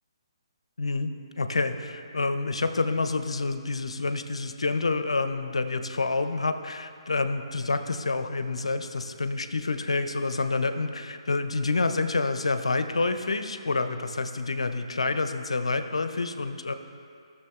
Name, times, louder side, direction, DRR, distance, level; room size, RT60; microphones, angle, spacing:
voice 1, 0.8-16.7, left 3 dB, 80° left, 9 dB, 0.5 m, -28 dB
15.0 x 6.7 x 2.3 m, 2.4 s
figure-of-eight pair, 145°, 3 cm